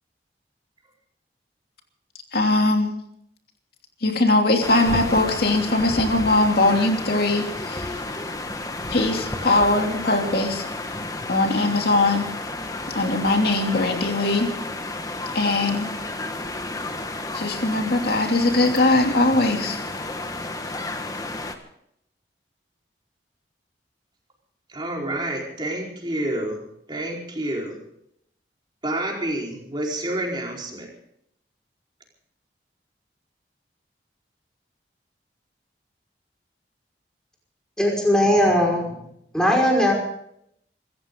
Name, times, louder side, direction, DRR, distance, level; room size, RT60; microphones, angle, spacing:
voice 1, 2.3-2.9 4.0-8.0 8.9-10.6 11.3-12.3 12.9-14.5 15.3-15.9 17.3-19.8, left 2 dB, 60° left, 3 dB, 3.0 m, -21 dB
sound 1, 4.6-21.6, left 2 dB, 20° left, 1.5 m, -32 dB
voice 2, 24.7-26.6 26.9-27.8 28.8-30.9, right 1 dB, 25° right, -1 dB, 4.5 m, -28 dB
voice 3, 37.8-38.9 39.3-39.9, equal, 5° left, 0 dB, 5.3 m, -19 dB
25.0 x 15.0 x 3.9 m, 0.73 s
head